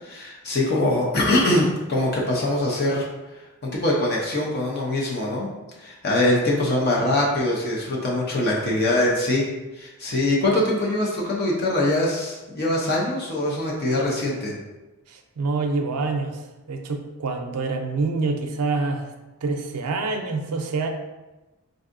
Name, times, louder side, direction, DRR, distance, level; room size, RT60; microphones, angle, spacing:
voice 1, 0.0-3.1 3.6-5.5 5.8-9.5 9.8-14.5, left 1 dB, 45° left, -3 dB, 0.6 m, -23 dB
voice 2, 15.1-16.4 16.7-19.1 19.4-20.9, right 3 dB, 90° right, 4 dB, 0.5 m, -26 dB
4.7 x 2.6 x 2.5 m, 1.1 s
head